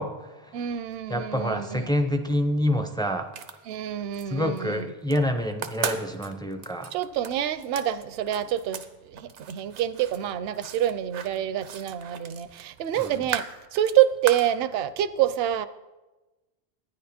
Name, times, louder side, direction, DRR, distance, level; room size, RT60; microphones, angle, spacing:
voice 1, 0.0-0.6 1.1-3.3 4.3-6.9 13.0-13.2, equal, 5° left, 0.4 m, -27 dB
voice 2, 0.5-1.9 3.7-4.9 6.9-15.7, right 11 dB, 65° right, 0.7 m, -27 dB
sound 1, 3.2-4.2 4.6-5.2 5.5-8.9 9.2-14.5, right 7 dB, 85° right, 1.0 m, -37 dB
12.5 x 9.8 x 4.3 m
omnidirectional pair, 1.2 m